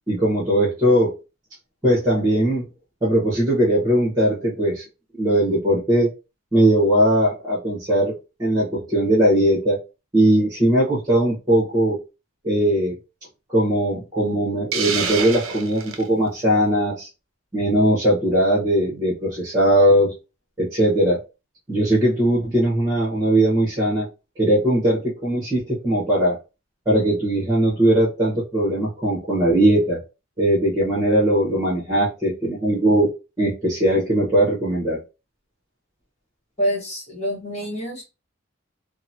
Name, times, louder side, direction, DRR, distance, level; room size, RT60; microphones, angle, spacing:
voice 1, 0.1-1.1 1.8-2.6 3.0-4.8 5.2-6.1 6.5-8.1 8.4-9.8 10.1-12.0 12.4-12.9 13.5-17.1 17.5-20.1 20.6-21.2 21.7-24.1 24.4-26.4 26.9-30.0 30.4-33.1 33.4-35.0, right 1 dB, 20° right, 1.0 m, -19 dB
Hiss, 14.7-16.1, right 6 dB, 70° right, 0.5 m, -27 dB
voice 2, 36.6-38.0, equal, 30° left, 1.1 m, -26 dB
2.8 x 2.1 x 2.7 m
head